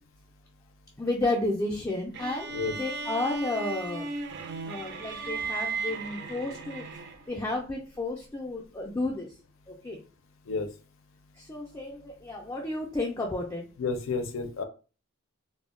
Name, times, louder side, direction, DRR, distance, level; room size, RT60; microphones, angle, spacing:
voice 1, 1.0-4.1 4.6-6.8 7.3-9.3 9.7-10.0 11.4-13.6, left 2 dB, 15° left, -1 dB, 0.3 m, -32 dB
sound 1, 2.1-7.4, right 4 dB, 55° right, 0.4 m, -36 dB
voice 2, 13.8-14.6, left 4 dB, 75° left, 7 dB, 0.5 m, -30 dB
2.2 x 2.0 x 3.6 m, 0.35 s
head